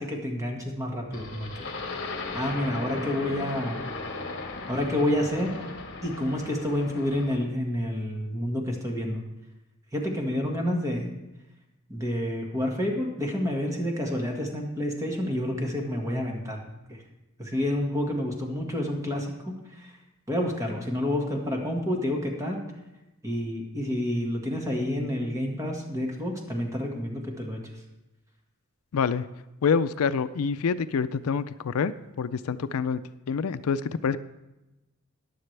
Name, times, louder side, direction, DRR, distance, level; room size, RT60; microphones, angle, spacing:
voice 1, 0.0-3.8 4.7-5.5 6.0-9.2 9.9-11.1 11.9-16.6 16.9-17.0 17.4-19.9 20.3-22.6 23.2-27.6, left 1 dB, 15° right, 0 dB, 1.7 m, -29 dB
sound 1, 1.1-7.4, left 3 dB, 55° left, 1.4 m, -37 dB
voice 2, 28.9-29.3 29.6-33.0 33.3-34.2, left 6 dB, 85° left, 14 dB, 0.4 m, -26 dB
14.5 x 10.0 x 3.3 m, 0.98 s
head